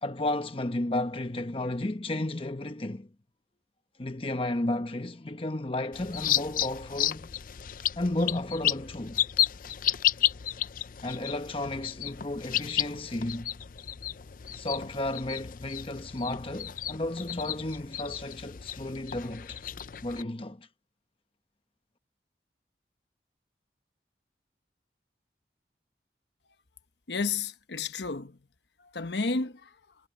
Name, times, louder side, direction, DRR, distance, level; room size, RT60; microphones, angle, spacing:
voice 1, 0.0-3.1 4.0-7.3 8.0-9.2 11.0-13.5 14.5-19.6 20.0-20.7, left 1 dB, 30° left, 1.0 m, -33 dB
sound 1, 5.9-20.2, left 11 dB, 50° left, 0.5 m, -32 dB
voice 2, 27.1-28.4 28.9-29.7, left 4 dB, 75° left, 1.0 m, -31 dB
head